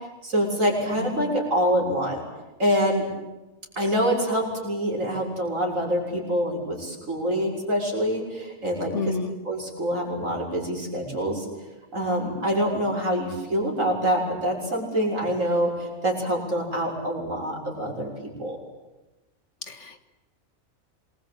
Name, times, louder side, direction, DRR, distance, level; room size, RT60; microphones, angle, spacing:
voice 1, 0.2-2.2 2.6-3.0 3.8-9.2 9.5-11.5 11.9-18.6, equal, 65° right, 0 dB, 7.3 m, -25 dB
voice 2, 1.0-1.4 8.9-9.4 19.6-20.1, left 4 dB, 55° left, 9 dB, 2.1 m, -31 dB
27.0 x 22.0 x 9.0 m, 1.1 s
omnidirectional pair, 1.5 m